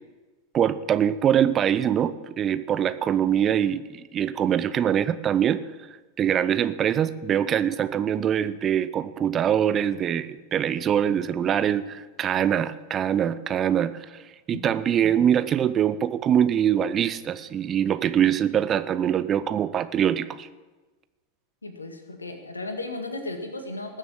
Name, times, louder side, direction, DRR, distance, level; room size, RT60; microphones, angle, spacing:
voice 1, 0.5-5.6 6.2-14.1 14.5-20.5, right 9 dB, 25° right, 14 dB, 0.6 m, -23 dB
voice 2, 21.6-24.0, left 2 dB, 80° left, 6 dB, 1.9 m, -35 dB
19.5 x 7.4 x 7.4 m, 1.3 s
figure-of-eight pair, 90°, 0 cm